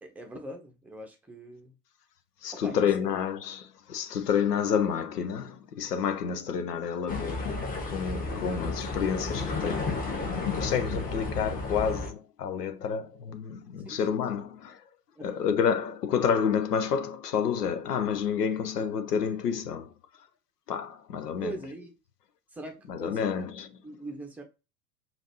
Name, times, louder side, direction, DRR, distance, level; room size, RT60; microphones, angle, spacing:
voice 1, 0.0-1.7 2.5-3.1 13.8-14.0 15.2-15.5 21.4-21.9 22.5-23.4 23.8-24.4, right 2 dB, 5° right, 0.8 m, -42 dB
voice 2, 2.4-9.9 10.6-14.8 15.2-19.9 20.7-21.5 22.9-23.7, left 7 dB, 75° left, 0.7 m, -29 dB
sound 1, 7.1-12.1, left 3 dB, 15° left, 1.4 m, -32 dB
5.1 x 2.6 x 2.8 m
figure-of-eight pair, 85°, 48 cm